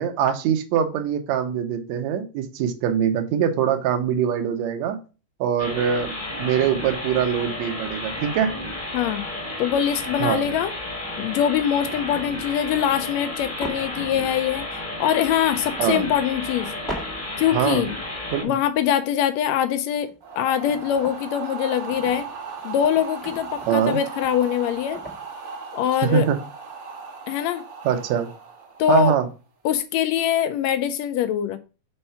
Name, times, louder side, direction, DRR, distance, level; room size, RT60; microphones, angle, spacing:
voice 1, 0.0-5.0 5.4-8.5 10.2-10.5 15.8-16.1 17.5-17.8 18.3-18.5 23.7-24.0 26.0-26.4 27.9-28.3 28.9-29.3, right 8 dB, 70° right, 5 dB, 1.9 m, -23 dB
sound 1, 5.6-18.4, left 1 dB, 30° left, 0.9 m, -32 dB
voice 2, 9.6-10.7 11.2-14.6 15.0-16.7 17.4-17.9 18.4-20.1 20.4-22.3 22.6-25.0 25.7-26.3 27.3-27.6 28.8-29.1 29.6-31.6, left 10 dB, 80° left, 10 dB, 1.6 m, -23 dB
sound 2, 9.8-10.0 10.8-11.0 11.6-12.7 13.6-14.8 15.1-15.2 16.9-17.7 18.0-18.1 19.8-19.9 20.0-21.4 21.8-25.3, right 1 dB, ahead, 0.4 m, -41 dB
sound 3, 20.2-29.3, right 5 dB, 55° right, 1.3 m, -37 dB
5.5 x 4.4 x 5.6 m, 0.33 s
omnidirectional pair, 3.6 m